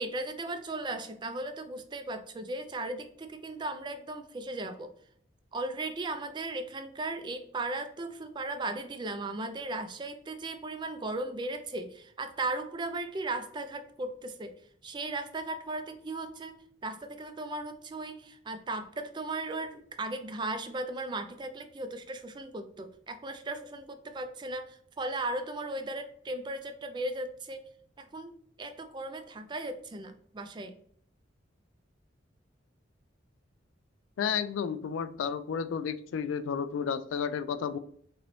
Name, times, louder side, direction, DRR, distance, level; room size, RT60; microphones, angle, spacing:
voice 1, 0.0-4.9 5.5-14.5 14.8-27.6 28.0-28.3 28.6-30.7, right 2 dB, 25° right, 8 dB, 0.4 m, -37 dB
voice 2, 34.2-37.8, left 7 dB, 90° left, 12 dB, 0.3 m, -32 dB
3.8 x 3.1 x 3.0 m, 0.62 s
head